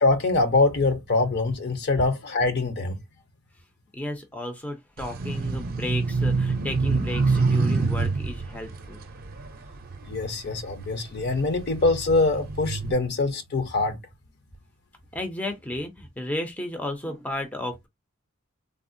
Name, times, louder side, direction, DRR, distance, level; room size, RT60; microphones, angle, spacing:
voice 1, 0.0-3.0 10.1-14.0, left 3 dB, 50° left, 0.6 m, -24 dB
voice 2, 3.9-9.0 15.1-17.9, left 1 dB, 10° left, 0.4 m, -33 dB
sound 1, 5.0-10.5 11.1-12.9, right 4 dB, 45° right, 0.5 m, -26 dB
3.4 x 2.0 x 2.5 m
head